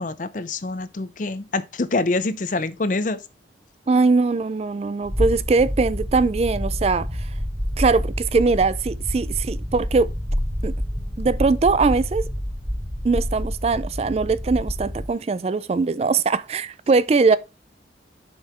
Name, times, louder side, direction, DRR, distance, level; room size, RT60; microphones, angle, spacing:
voice 1, 0.0-3.2, left 3 dB, 45° left, 0.6 m, -25 dB
voice 2, 3.9-7.3 7.8-10.1 10.6-10.7 11.2-12.3 13.0-17.4, right 4 dB, 35° right, 0.3 m, -21 dB
sound 1, 5.0-15.1, equal, 10° right, 1.0 m, -28 dB
7.0 x 5.5 x 4.3 m
head